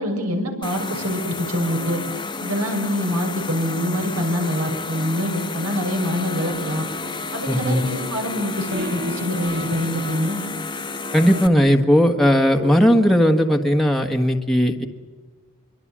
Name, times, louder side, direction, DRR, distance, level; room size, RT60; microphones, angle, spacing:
voice 1, 0.0-2.0 2.4-6.9 7.3-10.4, equal, 75° right, 4 dB, 6.4 m, -25 dB
sound 1, 0.6-11.5, left 3 dB, 20° left, 1.3 m, -31 dB
sound 2, 6.5-13.9, right 1 dB, 50° right, 2.0 m, -36 dB
voice 2, 7.5-7.8 11.1-14.9, equal, ahead, 2 dB, 1.5 m, -17 dB
26.0 x 24.0 x 7.5 m, 1.5 s
head